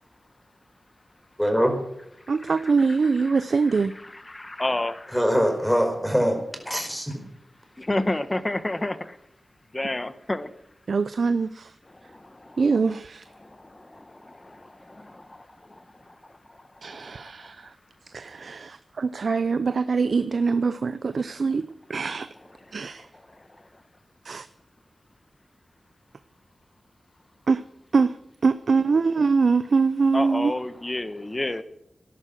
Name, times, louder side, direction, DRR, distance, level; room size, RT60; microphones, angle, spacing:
voice 1, 1.4-1.8 5.1-6.4 6.6-7.2, equal, 5° left, 5 dB, 4.6 m, -23 dB
voice 2, 2.3-3.9 10.9-11.7 12.6-13.2 16.8-17.7 18.1-22.3 22.7-23.1 24.2-24.5 27.5-27.6 27.9-28.2 28.4-30.5, right 4 dB, 70° right, 13 dB, 0.6 m, -23 dB
voice 3, 4.3-5.2 7.8-9.1 9.7-10.5 12.1-12.6 13.4-14.4 15.1-15.2 30.1-31.6, left 1 dB, 25° left, 13 dB, 1.4 m, -29 dB
13.5 x 11.0 x 7.6 m, 0.77 s
cardioid pair, 55°, 0 cm